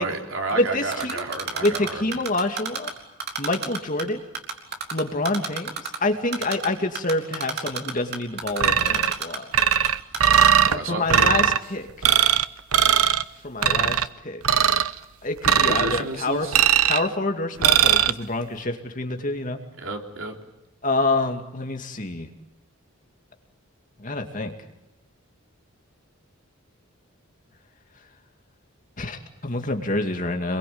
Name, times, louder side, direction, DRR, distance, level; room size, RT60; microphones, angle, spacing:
voice 1, 0.0-2.2 10.7-11.3 15.5-16.6 19.8-20.3, right 3 dB, 65° right, 3 dB, 3.8 m, -31 dB
voice 2, 0.5-1.3 1.6-2.9 3.4-4.2 4.9-9.5 10.7-12.1 13.4-14.0 14.2-14.4 15.2-16.5 16.9-19.6 20.8-22.3 24.0-24.5 29.0-30.6, left 2 dB, 35° left, 5 dB, 2.4 m, -27 dB
Typing, 0.9-2.9 3.2-4.0 4.3-6.0 6.3-6.7 6.9-9.9 10.1-10.5, right 5 dB, 50° right, 3.6 m, -29 dB
sound 1, 8.6-9.2 9.5-10.7 11.1-11.6 12.0-12.4 12.7-13.2 13.6-14.1 14.4-14.9 15.4-16.0 16.5-17.1 17.6-18.1, right 9 dB, 90° right, 0.9 m, -19 dB
27.5 x 22.5 x 8.8 m, 0.93 s
head